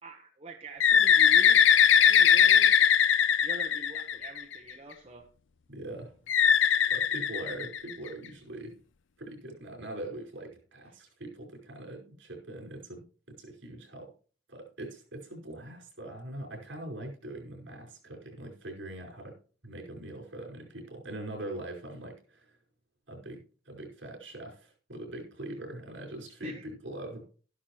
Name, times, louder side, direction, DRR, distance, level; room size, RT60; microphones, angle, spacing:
voice 1, 0.0-2.8 3.4-5.3 26.4-26.6, right 2 dB, 30° right, 0 dB, 1.1 m, -45 dB
Bird, 0.8-4.5 6.3-8.1, left 8 dB, 75° left, 0.5 m, -21 dB
voice 2, 5.7-6.2 6.9-8.8 9.2-14.1 14.5-22.6 23.1-27.2, right 1 dB, 70° right, -1 dB, 5.1 m, -42 dB
12.5 x 11.0 x 3.1 m, 0.40 s
head